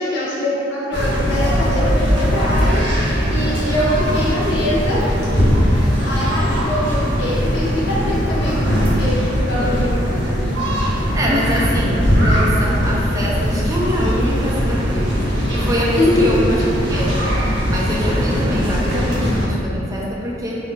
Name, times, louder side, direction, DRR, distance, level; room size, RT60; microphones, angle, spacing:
voice 1, 0.0-2.8 3.3-5.0 5.7-9.9 16.0-16.3, left 1 dB, 65° left, -8 dB, 0.7 m, -23 dB
sound 1, 0.9-19.5, equal, 75° right, 0.8 m, -19 dB
voice 2, 10.0-10.4 10.9-15.2 15.5-16.6 16.9-17.1 17.7-20.6, equal, 20° right, -4 dB, 0.4 m, -24 dB
2.3 x 2.1 x 3.8 m, 2.8 s
head